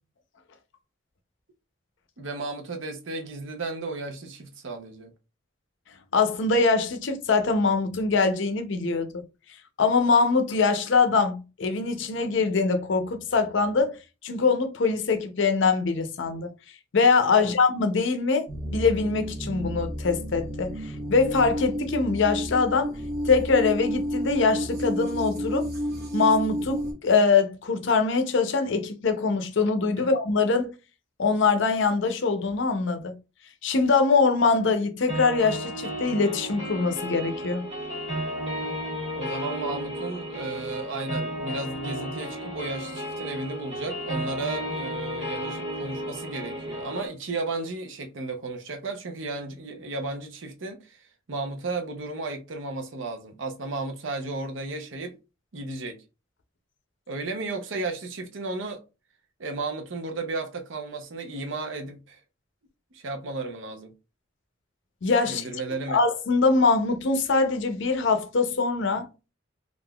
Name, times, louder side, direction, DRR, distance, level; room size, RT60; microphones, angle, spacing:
voice 1, 2.2-5.1 17.4-17.5 30.0-30.1 39.1-55.2 55.5-56.0 57.1-58.8 59.4-62.2 62.9-63.9 65.2-66.0, right 3 dB, 70° right, 0.6 m, -34 dB
voice 2, 6.1-9.2 9.8-14.0 14.2-16.5 16.9-20.8 21.1-22.9 23.3-25.7 26.1-30.7 31.2-33.1 33.6-37.7 65.0-65.4 65.9-69.1, left 4 dB, 65° left, 0.5 m, -23 dB
sound 1, 18.5-26.9, equal, 55° right, 1.0 m, -31 dB
sound 2, 35.1-47.1, equal, 30° right, 1.5 m, -33 dB
3.6 x 2.4 x 2.2 m
head